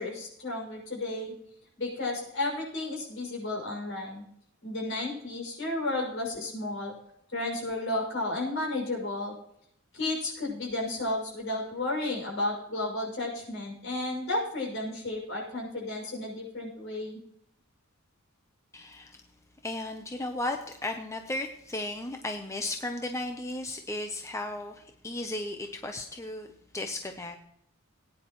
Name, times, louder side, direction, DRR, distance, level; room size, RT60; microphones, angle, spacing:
voice 1, 0.0-1.3 1.8-4.2 4.6-6.9 7.3-9.3 9.9-17.2, left 2 dB, 60° left, -2 dB, 6.2 m, -33 dB
voice 2, 18.7-19.2 19.6-26.5 26.7-27.4, left 2 dB, 15° left, 5 dB, 0.7 m, -35 dB
19.5 x 9.8 x 3.1 m, 0.73 s
head